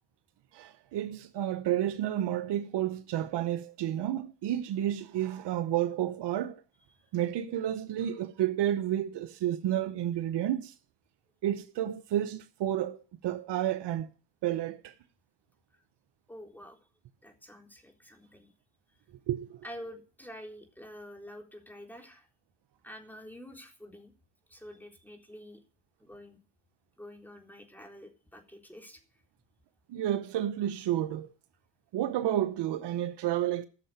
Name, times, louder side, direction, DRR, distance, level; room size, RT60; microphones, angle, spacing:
voice 1, 0.5-6.6 7.1-10.7 11.4-14.1 14.4-14.9 19.3-19.6 29.9-31.3 31.9-33.7, right 12 dB, 70° right, 0.9 m, -31 dB
voice 2, 16.3-16.8 17.2-18.5 18.9-19.0 19.6-22.3 22.8-24.1 24.5-25.6 26.0-26.4 27.0-29.0, equal, 5° left, 3.8 m, -48 dB
14.0 x 6.7 x 7.8 m
supercardioid pair, 65°, 42 cm